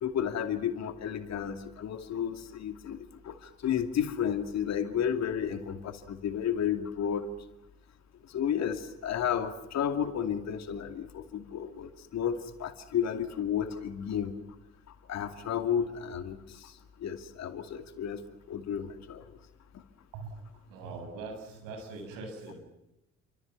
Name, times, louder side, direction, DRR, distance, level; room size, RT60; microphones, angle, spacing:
voice 1, 0.0-7.3 8.3-14.3 15.1-16.4 16.6-16.7 17.0-18.2 18.5-19.2, left 8 dB, 50° left, 8 dB, 2.5 m, -32 dB
voice 2, 20.1-22.6, right 3 dB, 65° right, 4 dB, 7.4 m, -42 dB
28.5 x 25.5 x 6.0 m, 0.92 s
figure-of-eight pair, 50°, 35 cm